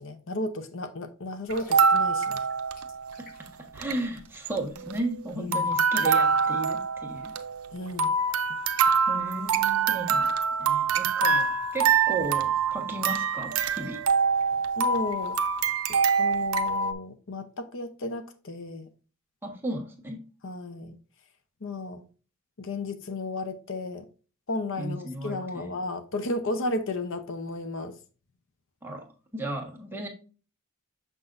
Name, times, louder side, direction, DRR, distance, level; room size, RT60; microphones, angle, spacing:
voice 1, 0.0-2.5 5.4-5.7 7.7-8.1 14.8-15.4 16.2-18.9 20.4-21.0 21.6-22.1 22.6-24.1 24.5-28.0, left 2 dB, 65° left, 0.7 m, -33 dB
sound 1, 1.3-3.7 3.9-4.1, right 1 dB, 45° left, 3.7 m, -51 dB
sound 2, 1.5-3.2 3.5-3.6 3.7-4.0 4.5-5.2 5.5-16.9, right 5 dB, 80° right, 0.6 m, -25 dB
voice 2, 3.7-7.3 9.1-10.3 10.6-14.0 19.4-20.2 24.8-25.7 28.8-29.1 29.3-30.1, right 2 dB, 10° right, 1.4 m, -35 dB
6.5 x 6.0 x 2.5 m
head